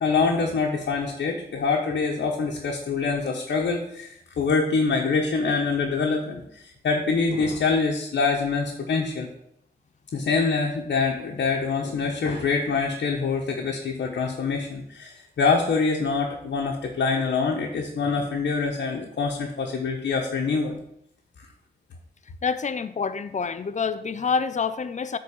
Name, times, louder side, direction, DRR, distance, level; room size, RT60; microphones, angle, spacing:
voice 1, 0.0-9.3 10.1-20.8, left 4 dB, 80° left, 0 dB, 1.1 m, -25 dB
voice 2, 22.4-25.2, left 5 dB, 40° left, 12 dB, 0.6 m, -27 dB
8.5 x 3.9 x 7.0 m, 0.74 s
cardioid pair, 65°, 18 cm